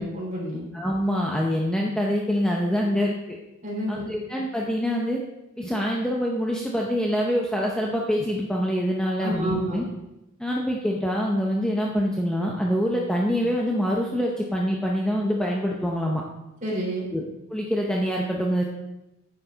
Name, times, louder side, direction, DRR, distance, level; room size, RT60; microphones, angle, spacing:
voice 1, 0.0-0.7 3.6-4.1 9.2-9.8 16.6-17.1, right 1 dB, 35° right, -4 dB, 3.8 m, -29 dB
voice 2, 0.7-3.1 3.9-5.2 5.6-9.8 10.4-16.2 17.1-17.2 17.5-18.6, equal, 5° left, -2 dB, 0.7 m, -25 dB
10.0 x 7.9 x 3.9 m, 0.94 s
head